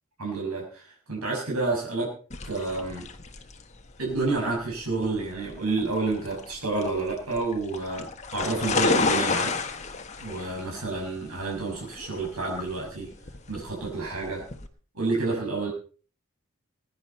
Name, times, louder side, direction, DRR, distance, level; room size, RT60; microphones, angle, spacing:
voice 1, 0.2-2.1 2.4-3.1 4.0-9.6 10.2-13.1 13.5-14.4 14.9-15.7, right 3 dB, 80° right, -2 dB, 6.3 m, -29 dB
sound 1, 2.3-14.7, left 4 dB, 30° left, 1.5 m, -31 dB
22.0 x 10.5 x 4.4 m, 0.41 s
head